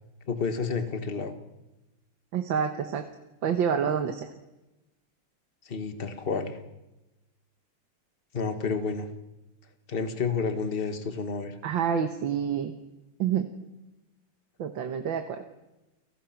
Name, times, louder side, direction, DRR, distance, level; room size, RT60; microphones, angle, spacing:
voice 1, 0.3-1.3 5.6-6.6 8.3-9.1 9.9-11.6, left 5 dB, 30° left, 7 dB, 1.6 m, -30 dB
voice 2, 2.3-3.0 3.4-4.3 11.6-12.7 13.2-13.5 14.6-15.4, right 7 dB, 65° right, 6 dB, 1.9 m, -27 dB
29.5 x 18.5 x 6.0 m, 0.99 s
omnidirectional pair, 2.4 m